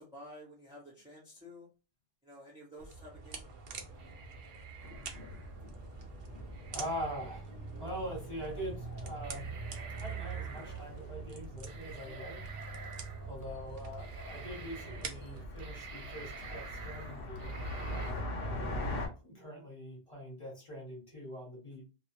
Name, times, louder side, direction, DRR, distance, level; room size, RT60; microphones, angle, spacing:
voice 1, 0.0-1.7 2.2-3.5 12.0-12.1, left 1 dB, 5° right, -4 dB, 0.6 m, -51 dB
sound 1, 2.8-15.4, right 5 dB, 55° right, 0.6 m, -45 dB
sound 2, 4.0-5.6 6.5-7.4 8.6-8.7 9.2-10.9 11.6-13.4 13.9-15.1 15.4-18.1, right 6 dB, 75° right, 1.0 m, -50 dB
sound 3, 4.8-19.1, left 1 dB, 55° left, 0.9 m, -43 dB
voice 2, 6.7-9.5 10.0-12.4 13.3-17.6 17.9-19.0 19.2-21.9, equal, 30° left, -2 dB, 1.2 m, -43 dB
2.4 x 2.0 x 2.9 m, 0.32 s
omnidirectional pair, 1.2 m